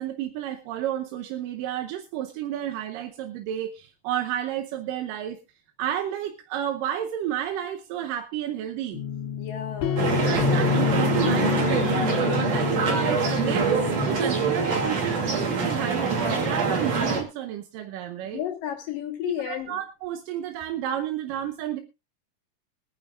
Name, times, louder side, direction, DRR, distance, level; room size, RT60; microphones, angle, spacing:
voice 1, 0.0-5.4 5.8-9.0 10.2-13.7 14.1-18.4 19.4-21.8, right 11 dB, 75° right, 6 dB, 2.4 m, -31 dB
sound 1, 8.9-14.1, left 8 dB, 90° left, 3.3 m, -28 dB
voice 2, 9.4-10.0 18.2-19.8, left 11 dB, 70° left, 3 dB, 3.0 m, -32 dB
sound 2, 10.0-17.2, right 4 dB, 50° right, 3.5 m, -25 dB
24.0 x 9.9 x 2.4 m, 0.26 s
omnidirectional pair, 4.1 m